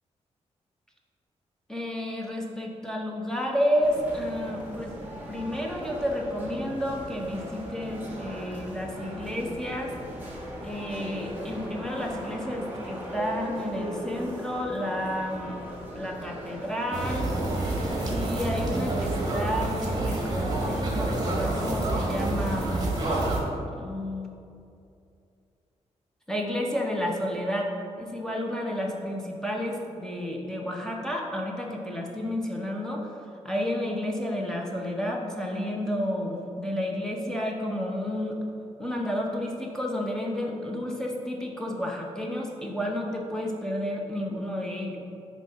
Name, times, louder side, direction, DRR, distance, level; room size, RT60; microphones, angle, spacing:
voice 1, 1.7-4.9 5.3-9.9 10.6-15.6 15.9-17.3 18.0-22.8 23.6-24.4 26.3-27.7 28.0-33.1 33.4-38.4 38.8-45.0, equal, 5° left, -1 dB, 0.7 m, -31 dB
sound 1, 3.8-18.9, equal, 15° right, 1.6 m, -39 dB
sound 2, 16.9-23.4, right 2 dB, 35° right, 1.5 m, -28 dB
9.3 x 3.1 x 5.5 m, 2.5 s
wide cardioid pair, 140°, 12 cm